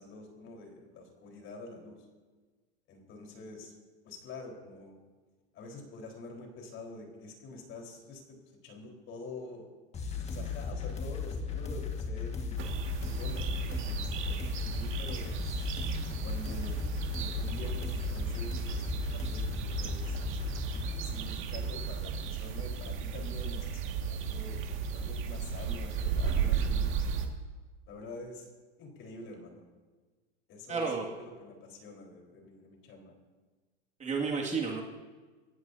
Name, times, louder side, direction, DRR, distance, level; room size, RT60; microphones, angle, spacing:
voice 1, 0.0-2.0 2.9-3.7 4.0-4.9 5.5-9.7 10.2-15.3 16.2-16.8 17.1-19.4 19.8-20.5 21.0-24.6 24.9-27.1 27.9-28.5 28.8-29.7 30.5-30.9 31.2-33.1, left 2 dB, 35° left, 1 dB, 4.5 m, -46 dB
sound 1, 9.9-20.9, left 5 dB, 20° left, 1.8 m, -36 dB
sound 2, 12.6-27.3, right 7 dB, 35° right, 2.1 m, -35 dB
voice 2, 30.7-31.1 34.0-34.8, right 4 dB, 20° right, -1 dB, 2.3 m, -31 dB
26.5 x 16.0 x 2.8 m, 1.3 s
supercardioid pair, 130°, 34 cm